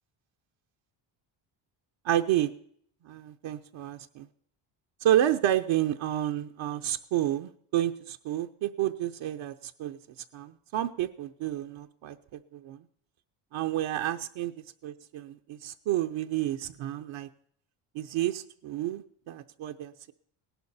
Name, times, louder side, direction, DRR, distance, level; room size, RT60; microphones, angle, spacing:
voice 1, 2.0-2.5 3.0-4.3 5.0-10.0 10.3-12.9 13.5-17.3 17.9-20.1, right 12 dB, 70° right, 6 dB, 0.8 m, -30 dB
17.5 x 11.5 x 4.2 m, 0.62 s
cardioid pair, 120°, 49 cm